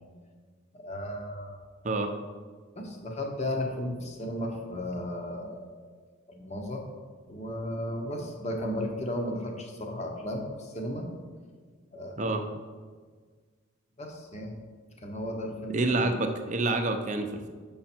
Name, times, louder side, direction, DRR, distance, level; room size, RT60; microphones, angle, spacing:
voice 1, 0.7-1.6 2.8-5.9 6.3-6.8 7.3-11.1 11.9-12.2 14.0-14.5 15.0-16.0, left 1 dB, 35° left, 2 dB, 0.9 m, -34 dB
voice 2, 15.7-17.5, right 2 dB, 35° right, 6 dB, 0.6 m, -28 dB
7.0 x 5.6 x 4.4 m, 1.5 s
head